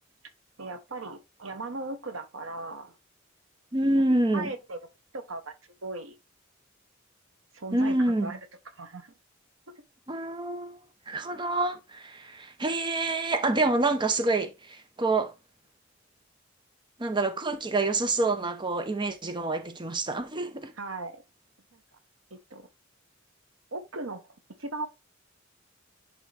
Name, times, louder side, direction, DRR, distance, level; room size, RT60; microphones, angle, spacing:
voice 1, 0.6-3.0 4.3-4.8 5.1-5.5 5.8-6.1 7.5-8.4 8.8-9.1 20.8-21.2 21.7-21.8 22.3-22.7 23.7-24.3 24.6-24.9, right 2 dB, 90° right, 1.2 m, -37 dB
voice 2, 3.7-4.5 7.7-8.3 10.1-10.8 11.1-15.3 17.0-20.7, right 2 dB, 25° right, 0.8 m, -27 dB
10.5 x 3.7 x 3.4 m
head